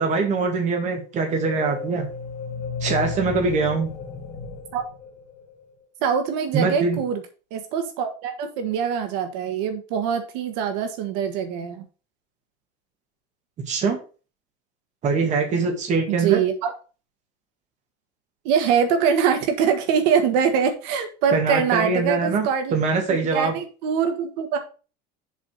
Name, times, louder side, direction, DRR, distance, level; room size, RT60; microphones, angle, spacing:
voice 1, 0.0-2.1 2.8-3.9 6.5-7.0 13.7-14.0 15.0-16.4 21.3-23.6, right 4 dB, 35° right, 3 dB, 2.2 m, -23 dB
sound 1, 1.1-5.7, left 5 dB, 35° left, 1.4 m, -34 dB
voice 2, 6.0-7.2 7.5-11.8 16.1-16.7 18.4-22.7 23.3-24.6, right 7 dB, 85° right, 7 dB, 1.5 m, -23 dB
7.3 x 4.1 x 6.6 m, 0.36 s
cardioid pair, 165°, 21 cm